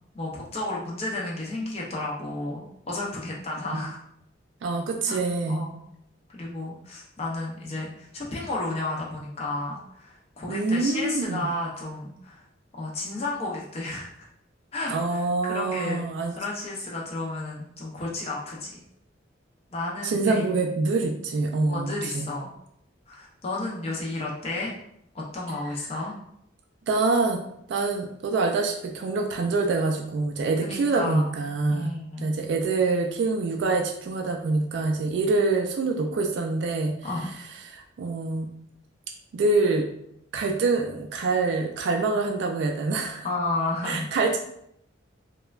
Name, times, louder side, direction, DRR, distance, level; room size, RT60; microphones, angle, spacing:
voice 1, 0.1-4.0 5.1-5.2 5.5-5.8 6.3-12.4 12.7-14.3 14.7-16.0 16.3-18.8 19.7-20.5 21.7-22.5 23.1-24.7 25.1-26.1 30.6-31.3 31.7-32.3 37.0-37.3 43.2-44.1, left 2 dB, 35° left, -3 dB, 0.5 m, -32 dB
voice 2, 4.6-5.7 10.5-11.5 14.9-16.3 20.0-22.3 26.9-27.4 27.7-31.9 32.2-36.9 37.6-38.5 39.3-39.9 40.3-43.3 43.8-44.4, right 3 dB, 65° right, 2 dB, 0.3 m, -25 dB
3.0 x 2.2 x 2.3 m, 0.74 s
head